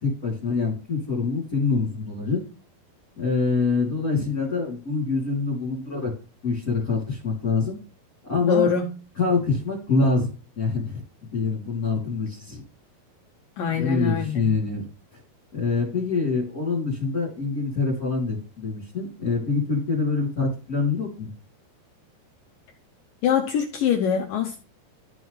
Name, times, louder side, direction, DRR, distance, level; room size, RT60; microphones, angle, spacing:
voice 1, 0.0-2.4 3.2-6.1 6.4-7.8 8.2-8.7 9.2-11.0 11.3-12.6 13.7-14.8 15.5-21.3, left 4 dB, 20° left, 3.3 m, -25 dB
voice 2, 8.4-8.9 13.6-14.5 23.2-24.6, left 7 dB, 80° left, 2.0 m, -23 dB
13.5 x 6.2 x 3.4 m
omnidirectional pair, 5.1 m